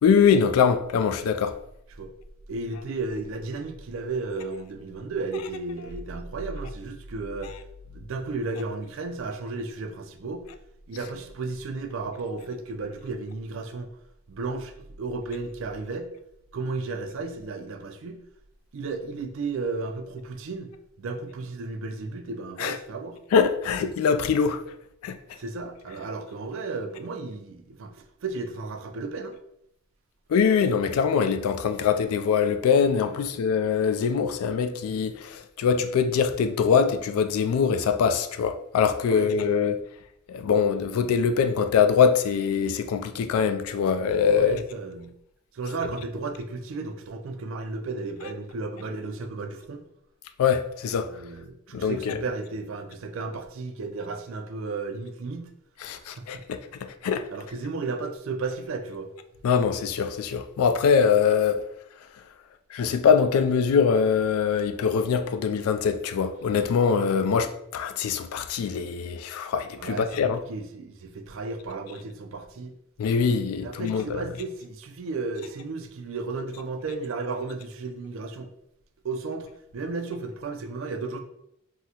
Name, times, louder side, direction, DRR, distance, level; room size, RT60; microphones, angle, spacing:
voice 1, 0.0-1.6 22.6-22.8 23.3-24.6 25.0-25.2 30.3-39.8 40.3-44.6 50.4-51.1 51.7-52.2 55.8-57.3 59.4-61.6 62.7-70.4 73.0-74.2, left 6 dB, 80° left, 0.3 m, -23 dB
voice 2, 2.5-7.6 7.9-10.4 10.9-13.9 14.3-16.1 16.5-18.2 18.7-20.7 21.0-23.2 25.4-29.4 33.1-33.4 39.1-39.6 44.4-45.1 45.5-49.8 51.1-55.5 56.0-56.4 57.3-59.1 69.8-72.7 73.6-78.5 79.0-81.2, right 3 dB, 65° right, 0.4 m, -34 dB
3.6 x 2.1 x 2.8 m
head